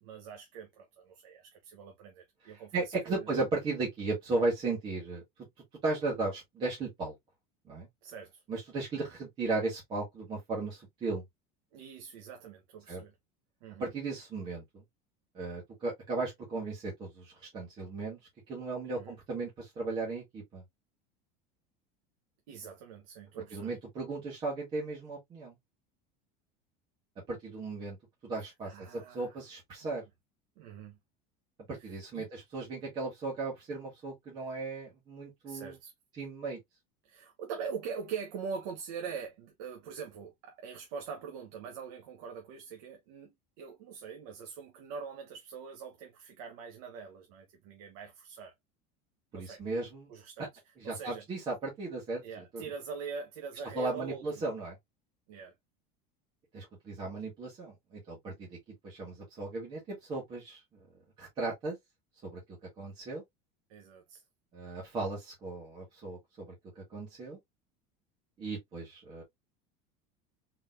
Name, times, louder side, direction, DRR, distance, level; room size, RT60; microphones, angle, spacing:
voice 1, 0.0-3.3 8.0-8.4 11.7-13.1 13.6-13.9 18.9-19.2 22.5-23.8 28.4-29.4 29.8-30.0 30.6-31.0 31.8-32.3 35.5-35.9 37.0-48.5 49.3-49.6 50.1-50.5 50.8-51.2 52.2-54.5 55.3-55.5 63.7-64.2, right 6 dB, 70° right, 1.1 m, -43 dB
voice 2, 2.5-5.2 5.8-7.1 7.7-7.9 8.5-11.2 12.9-13.0 13.8-14.8 15.3-18.2 18.5-20.6 23.5-25.5 27.3-28.0 28.2-30.0 31.7-35.8 36.2-36.6 49.3-50.1 50.8-52.6 53.7-54.8 56.5-58.6 58.8-60.6 61.2-61.8 62.2-62.4 62.8-63.2 64.5-66.5 66.8-67.4 68.4-69.2, right 3 dB, 25° right, 1.7 m, -36 dB
4.1 x 3.4 x 2.5 m
cardioid pair, 180°, 19 cm